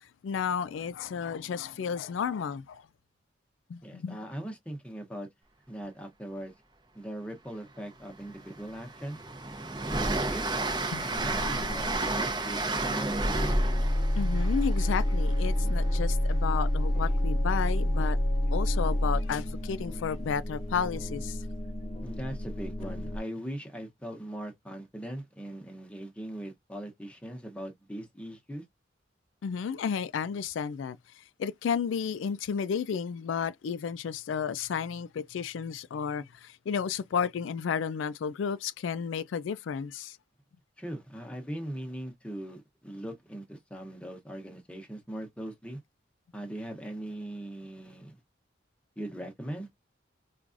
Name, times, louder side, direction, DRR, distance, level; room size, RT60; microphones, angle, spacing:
voice 1, 0.0-2.9 3.7-4.2 10.9-11.0 11.4-11.8 14.2-18.2 18.5-21.4 29.4-40.2, left 6 dB, 85° left, 0.3 m, -32 dB
voice 2, 3.8-5.3 5.7-6.5 6.9-9.2 9.8-10.5 11.0-13.6 22.0-28.6 40.8-45.8 46.3-48.1 49.0-49.7, right 1 dB, 5° left, 0.8 m, -40 dB
Train, 7.8-7.9 8.3-16.0, right 2 dB, 25° right, 0.7 m, -32 dB
sound 1, 11.2-23.2, left 1 dB, 35° left, 0.5 m, -29 dB
4.6 x 2.4 x 2.5 m
head